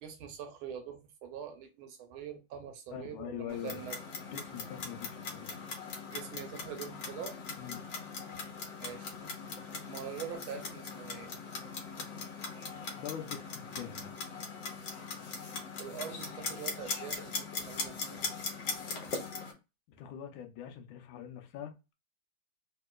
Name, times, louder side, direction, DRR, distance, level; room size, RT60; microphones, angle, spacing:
voice 1, 0.0-4.0 6.1-7.4 8.8-9.2 9.8-11.3 15.8-18.2, right 8 dB, 85° right, 1.6 m, -44 dB
voice 2, 2.9-3.8 4.3-5.5 7.6-7.8 12.9-14.1 20.0-21.9, left 9 dB, 80° left, 1.4 m, -43 dB
Clock, 3.5-19.5, left 4 dB, 65° left, 1.4 m, -40 dB
3.6 x 2.8 x 2.3 m
omnidirectional pair, 2.3 m